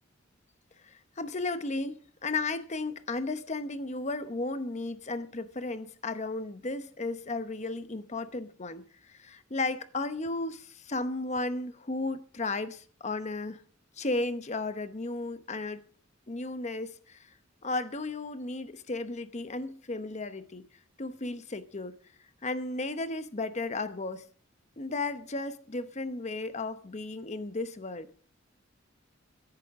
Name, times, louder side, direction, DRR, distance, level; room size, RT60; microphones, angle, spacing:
voice 1, 0.8-13.6 14.0-15.8 16.3-17.3 17.6-20.7 21.0-22.0 22.4-24.3 24.8-28.1, left 2 dB, 35° left, 0.9 m, -34 dB
22.5 x 11.0 x 3.6 m
head